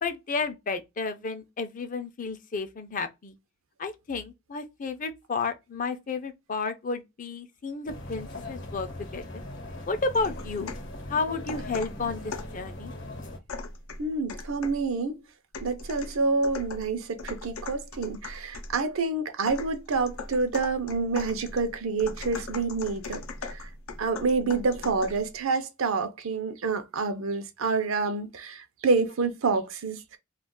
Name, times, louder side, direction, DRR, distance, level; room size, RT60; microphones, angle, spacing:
voice 1, 0.0-3.3 3.8-9.4 9.9-10.7 11.1-12.9, left 4 dB, 40° left, 0.5 m, -32 dB
sound 1, 7.9-13.4, left 1 dB, 60° left, 0.9 m, -40 dB
sound 2, 10.1-10.9 11.5-12.6 13.5-14.9 15.5-18.8 19.5-25.3, left 3 dB, 85° left, 0.6 m, -39 dB
voice 2, 14.0-15.2 15.6-23.2 23.5-23.7 24.0-30.2, right 4 dB, 75° right, 0.6 m, -28 dB
2.4 x 2.3 x 3.5 m
head